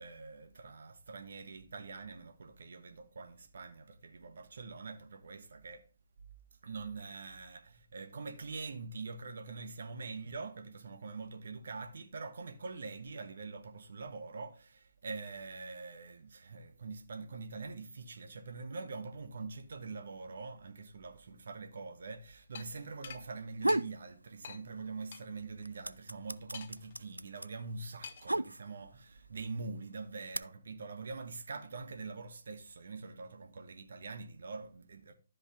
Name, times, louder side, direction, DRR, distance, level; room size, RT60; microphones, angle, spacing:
voice 1, 0.0-5.8 6.6-35.1, right 4 dB, 55° right, 1.3 m, -44 dB
sound 1, 22.5-22.7 23.0-23.2 23.7-23.8 24.4-24.6 25.1-25.2 26.5-26.9 28.0-28.3, left 7 dB, 40° left, 0.8 m, -46 dB
sound 2, 23.3-24.0 24.4-25.1 25.4-29.0 29.7-30.4, right 1 dB, 85° right, 0.4 m, -34 dB
12.5 x 5.3 x 3.6 m
figure-of-eight pair, 135°, 0 cm